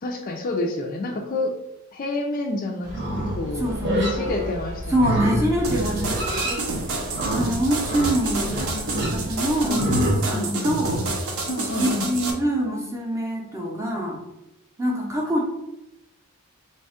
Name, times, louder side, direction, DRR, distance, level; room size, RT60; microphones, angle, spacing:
voice 1, 0.0-1.5 1.9-2.9 3.4-4.9 5.3-5.5 9.6-10.7 11.5-12.1, left 2 dB, 40° left, 3 dB, 0.4 m, -28 dB
Livestock farm animals working animals, 2.8-10.2, right 1 dB, 50° right, 0.9 m, -28 dB
voice 2, 3.5-4.3 4.9-6.7 7.3-11.0 11.8-14.2 14.8-15.5, equal, 15° right, -1 dB, 0.6 m, -25 dB
sound 1, 5.6-12.3, right 2 dB, 75° right, 0.7 m, -29 dB
3.1 x 2.3 x 4.2 m, 0.90 s
head